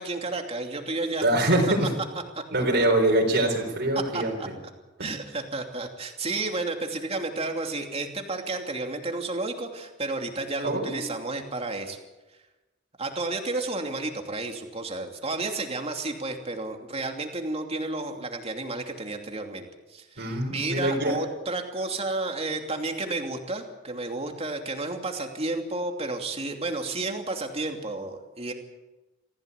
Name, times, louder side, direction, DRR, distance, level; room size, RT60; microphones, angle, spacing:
voice 1, 0.0-1.3 2.3-2.4 3.3-3.4 3.9-4.5 5.0-12.0 13.0-28.5, right 2 dB, 30° right, 4 dB, 2.8 m, -32 dB
voice 2, 1.2-1.9 2.5-4.3 5.0-5.1 10.6-11.0 20.2-21.2, right 1 dB, 55° right, 1 dB, 4.2 m, -24 dB
26.0 x 16.0 x 8.3 m, 1.1 s
head